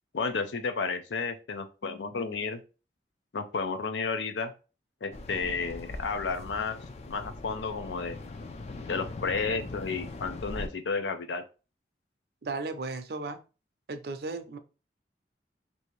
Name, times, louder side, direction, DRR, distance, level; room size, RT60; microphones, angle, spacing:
voice 1, 0.1-2.6 3.3-4.5 5.0-6.8 7.1-8.2 8.9-11.4, left 4 dB, 90° left, 9 dB, 0.5 m, -32 dB
sound 1, 5.1-10.7, left 2 dB, 35° left, 0.3 m, -41 dB
voice 2, 12.4-13.4 13.9-14.6, right 3 dB, 65° right, 9 dB, 0.5 m, -35 dB
3.3 x 2.7 x 3.1 m, 0.33 s
head